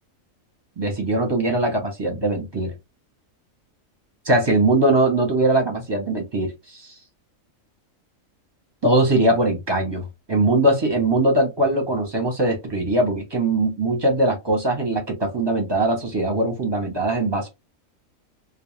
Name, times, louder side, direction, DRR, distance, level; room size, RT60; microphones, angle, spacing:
voice 1, 0.8-2.7 4.3-6.9 8.8-10.0 10.3-17.5, right 2 dB, 25° right, 0.6 m, -21 dB
2.3 x 2.1 x 3.0 m
omnidirectional pair, 1.4 m